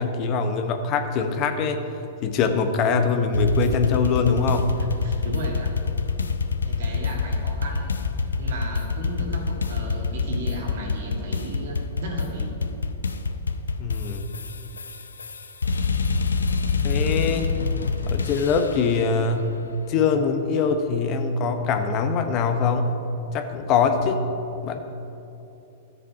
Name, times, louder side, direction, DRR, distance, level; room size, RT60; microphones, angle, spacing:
voice 1, 0.0-1.8 2.2-4.8 13.8-14.3 16.8-17.5 18.1-19.6 19.9-22.9 23.3-24.2 24.6-24.8, left 5 dB, 40° left, 7 dB, 0.9 m, -23 dB
sound 1, 3.3-18.9, left 4 dB, 90° left, 0.5 m, -26 dB
voice 2, 4.8-5.8 6.6-8.1 8.4-12.6, right 1 dB, 70° right, -1 dB, 2.3 m, -35 dB
13.0 x 6.7 x 5.0 m, 2.9 s
hypercardioid pair, 110°, 0 cm